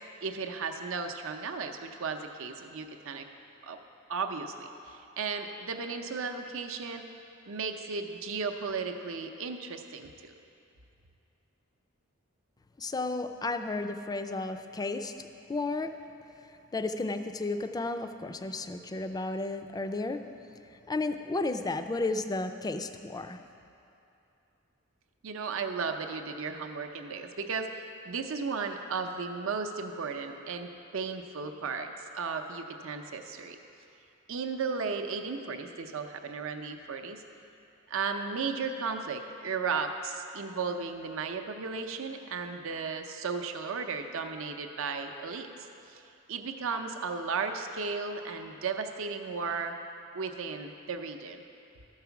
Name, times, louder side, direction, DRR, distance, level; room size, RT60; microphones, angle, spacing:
voice 1, 0.2-3.3 3.6-3.8 4.1-7.1 7.5-10.3 25.2-33.6 34.3-37.2 37.9-45.5 45.9-46.0 46.3-49.8 50.1-51.4, right 5 dB, 65° right, 5 dB, 0.6 m, -35 dB
voice 2, 12.8-15.1 15.5-15.9 16.7-20.2 20.9-23.4, left 2 dB, 20° left, 8 dB, 0.4 m, -33 dB
13.0 x 4.8 x 7.0 m, 2.7 s
head